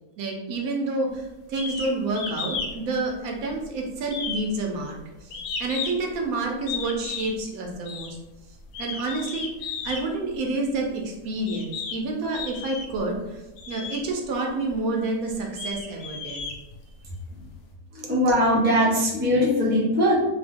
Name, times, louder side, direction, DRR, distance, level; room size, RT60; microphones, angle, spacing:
voice 1, 0.2-8.2 8.8-9.5 9.8-16.4, right 2 dB, 75° right, 1 dB, 1.0 m, -29 dB
sound 1, 1.6-2.7 3.1-3.7 4.1-6.1 6.7-7.4 7.9-8.1 8.7-10.0 10.9-11.0 11.5-12.0 12.3-13.0 13.6-14.0 14.7-14.8 15.3-17.1, left 5 dB, 85° left, 1.1 m, -33 dB
voice 2, 17.9-20.1, equal, 15° right, -5 dB, 0.4 m, -21 dB
2.8 x 2.2 x 3.4 m, 1.0 s
omnidirectional pair, 1.6 m